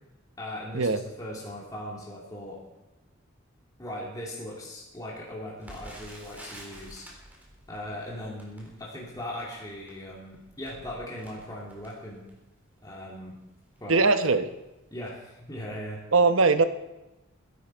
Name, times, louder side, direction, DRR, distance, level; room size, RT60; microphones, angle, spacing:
voice 1, 0.4-2.6 3.8-7.1 7.7-12.3 12.8-13.3 13.8-14.1 14.9-16.1, left 1 dB, 20° left, -5 dB, 2.7 m, -39 dB
Crackle, 5.6-12.6 13.2-13.3 13.6-13.8 14.4-14.7 14.9-15.0, right 1 dB, 10° right, 4.0 m, -49 dB
voice 2, 13.9-14.5 16.1-16.6, right 3 dB, 85° right, 9 dB, 1.0 m, -20 dB
21.0 x 11.0 x 4.7 m, 1.0 s
head